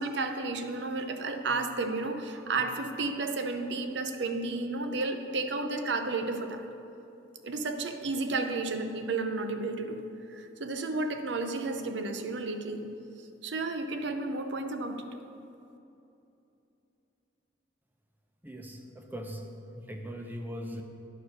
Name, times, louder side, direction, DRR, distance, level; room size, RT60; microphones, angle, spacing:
voice 1, 0.0-6.6 7.4-12.9 13.4-15.0, right 3 dB, 65° right, 7 dB, 0.6 m, -32 dB
voice 2, 18.4-19.4 19.7-20.8, equal, 10° right, 3 dB, 0.6 m, -40 dB
9.5 x 4.6 x 6.5 m, 2.8 s
head